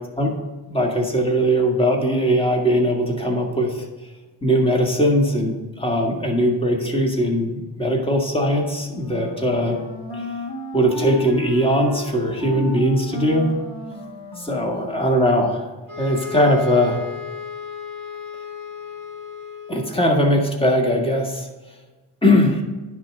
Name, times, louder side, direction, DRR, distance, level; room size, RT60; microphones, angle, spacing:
voice 1, 0.7-3.9 4.4-9.8 10.1-10.3 10.7-13.5 14.4-15.6 16.0-17.0 19.7-21.5 22.2-22.6, equal, 10° left, 1 dB, 1.8 m, -20 dB
Wind instrument woodwind instrument, 8.9-14.9, left 3 dB, 60° left, 2.2 m, -33 dB
sound 1, 15.9-20.3, left 6 dB, 45° left, 2.1 m, -35 dB
10.0 x 3.7 x 6.6 m, 1.2 s
supercardioid pair, 40°, 45 cm